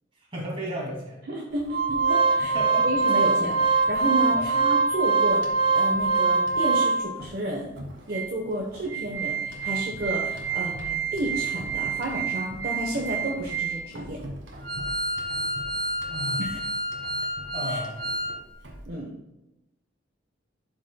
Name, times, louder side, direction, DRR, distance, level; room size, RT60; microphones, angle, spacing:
voice 1, 0.3-1.3 2.4-2.9 4.3-4.6 16.1-16.5 17.5-18.0, right 1 dB, 30° right, -3 dB, 2.4 m, -34 dB
voice 2, 1.3-2.6 2.8-5.4 5.7-7.7 8.1-14.2 16.4-16.5 17.7-17.8 18.9-19.1, right 1 dB, 55° right, -1 dB, 1.0 m, -31 dB
Organ, 1.7-7.3 7.8-7.9 8.1-8.3 8.7-18.3 18.6-18.8, right 4 dB, 70° right, 1.6 m, -25 dB
12.0 x 6.0 x 2.3 m, 0.93 s
head